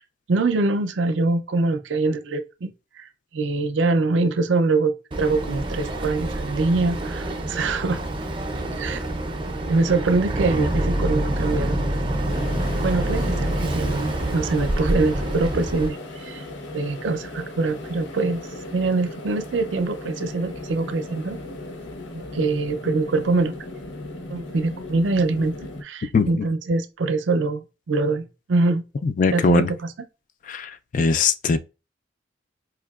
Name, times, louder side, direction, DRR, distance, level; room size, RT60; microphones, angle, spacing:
voice 1, 0.3-2.7 3.0-8.0 8.8-9.0 9.7-11.8 12.8-16.5 16.7-18.4 18.7-21.4 22.1-23.5 24.3-28.8 29.3-29.9, right 3 dB, 80° right, 0.5 m, -24 dB
Boat Water vehicle, 5.1-15.9, right 1 dB, 25° right, 0.5 m, -26 dB
sound 1, 12.3-25.8, left 2 dB, 75° left, 0.8 m, -37 dB
voice 2, 26.1-26.5 29.0-29.7 30.5-31.6, left 5 dB, 45° left, 0.3 m, -21 dB
4.7 x 2.8 x 2.3 m
head